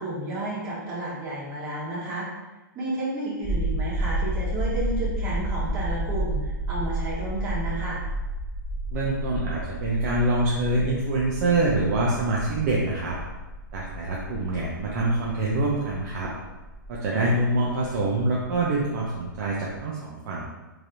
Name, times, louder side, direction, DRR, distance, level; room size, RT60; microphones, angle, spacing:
voice 1, 0.0-2.3 2.7-8.0 17.1-17.3, right 1 dB, 30° right, -7 dB, 1.4 m, -31 dB
sound 1, 3.4-19.5 19.8-19.9, right 1 dB, 10° right, 1.1 m, -31 dB
voice 2, 8.9-13.2 13.7-16.3 16.9-20.4, right 2 dB, 50° right, -4 dB, 0.6 m, -25 dB
3.1 x 2.8 x 2.6 m, 1.1 s
hypercardioid pair, 130°, 11 cm